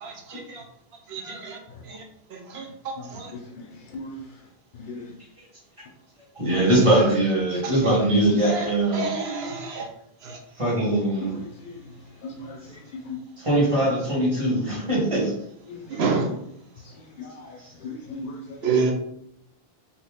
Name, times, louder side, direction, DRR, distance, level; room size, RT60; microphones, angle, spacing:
voice 1, 0.0-0.4 1.1-1.6 2.5-2.6 3.1-3.3 8.5-8.6 8.9-9.8 16.0-16.3 18.6-18.9, right 4 dB, 90° right, 2 dB, 0.9 m, -26 dB
voice 2, 6.3-9.1 10.6-11.3 13.4-15.3, right 1 dB, 30° right, -5 dB, 1.4 m, -21 dB
voice 3, 11.3-11.7 12.2-12.6 12.9-13.0 15.7-15.8 16.2-16.4 17.2-17.3 17.8-18.9, left 2 dB, 60° left, 3 dB, 0.6 m, -37 dB
2.9 x 2.7 x 3.5 m, 0.75 s
omnidirectional pair, 1.0 m